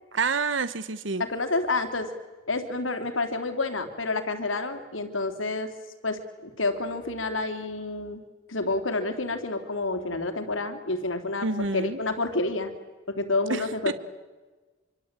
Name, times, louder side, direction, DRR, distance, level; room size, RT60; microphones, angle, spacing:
voice 1, 0.1-1.2 11.4-12.0 13.5-13.9, right 4 dB, 70° right, 13 dB, 1.2 m, -28 dB
voice 2, 1.2-2.1 2.5-5.7 6.0-8.2 8.5-12.7 13.1-13.9, left 2 dB, 80° left, 7 dB, 3.3 m, -29 dB
26.0 x 25.0 x 9.0 m, 1.2 s
head